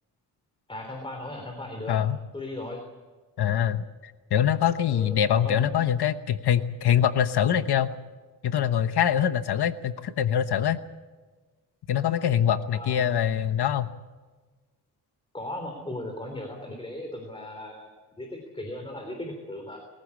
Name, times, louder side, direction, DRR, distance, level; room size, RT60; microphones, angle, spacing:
voice 1, 0.7-2.0 2.3-2.8 4.9-5.2 5.4-5.8 12.7-13.1 15.3-17.9 18.2-19.8, left 1 dB, 15° left, 3 dB, 3.4 m, -37 dB
voice 2, 1.9-2.2 3.4-8.0 8.4-10.8 11.9-13.9, left 9 dB, 75° left, 11 dB, 1.1 m, -24 dB
22.0 x 15.0 x 8.5 m, 1.3 s
wide cardioid pair, 130°, 39 cm